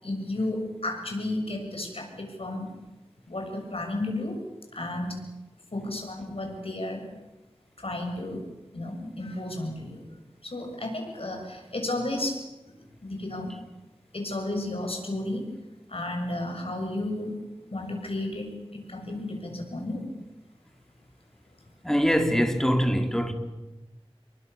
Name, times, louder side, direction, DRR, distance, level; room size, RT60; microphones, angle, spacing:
voice 1, 0.0-2.7 3.3-4.4 4.7-5.3 5.7-7.1 7.8-8.4 8.7-10.1 10.4-12.4 13.0-13.5 14.1-15.5 15.9-17.4 17.7-20.1, left 1 dB, 70° left, 7.2 m, -33 dB
voice 2, 21.8-23.3, equal, 5° left, 3.4 m, -23 dB
28.5 x 22.5 x 6.9 m
wide cardioid pair, 45°, 10 cm